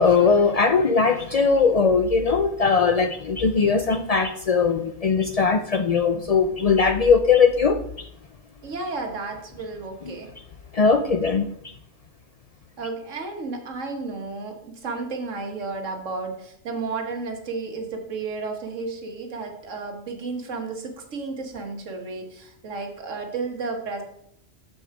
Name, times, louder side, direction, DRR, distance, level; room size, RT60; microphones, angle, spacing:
voice 1, 0.0-7.8 10.7-11.5, left 5 dB, 70° left, 7 dB, 0.3 m, -20 dB
voice 2, 8.6-10.3 12.8-24.0, right 3 dB, 80° right, 3 dB, 1.7 m, -32 dB
7.0 x 6.7 x 4.7 m, 0.70 s
omnidirectional pair, 1.3 m